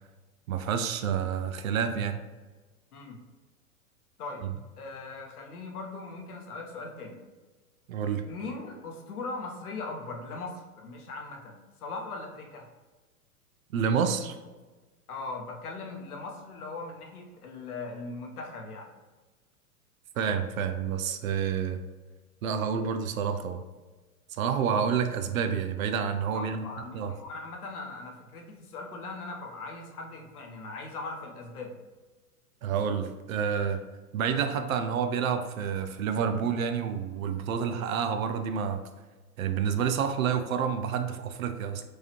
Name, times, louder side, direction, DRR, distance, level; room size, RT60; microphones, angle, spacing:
voice 1, 0.5-2.2 7.9-8.2 13.7-14.4 20.2-21.8 22.4-23.6 24.3-26.6 26.9-27.1 32.6-33.8 34.1-38.8 39.4-41.8, right 7 dB, 65° right, 8 dB, 0.6 m, -29 dB
voice 2, 4.8-7.2 8.3-12.7 15.1-18.9 26.3-31.8, left 3 dB, 75° left, 1 dB, 1.0 m, -39 dB
4.7 x 2.8 x 3.0 m, 1.3 s
hypercardioid pair, 115°, 45 cm